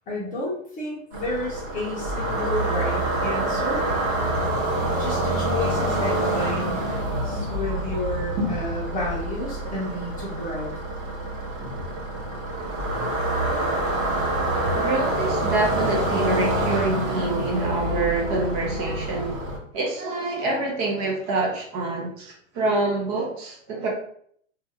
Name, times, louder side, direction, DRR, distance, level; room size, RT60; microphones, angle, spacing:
voice 1, 0.1-3.8 5.0-6.9 7.2-10.8, left 1 dB, 20° left, -5 dB, 0.8 m, -31 dB
sound 1, 1.1-19.6, right 1 dB, 55° right, 1.1 m, -26 dB
voice 2, 14.7-19.5 19.7-23.9, right 2 dB, 35° right, -2 dB, 0.9 m, -26 dB
2.6 x 2.4 x 2.7 m, 0.63 s
hypercardioid pair, 130°, 40 cm